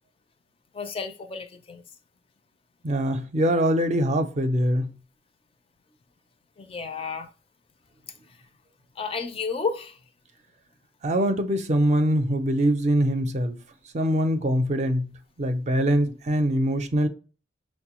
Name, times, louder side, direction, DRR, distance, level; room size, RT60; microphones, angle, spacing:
voice 1, 0.7-1.8 6.6-7.3 9.0-10.0, left 5 dB, 30° left, 0.4 m, -32 dB
voice 2, 2.8-4.9 11.0-13.6 13.9-15.1 15.4-17.1, equal, 40° right, 0.5 m, -23 dB
6.0 x 2.1 x 2.9 m
head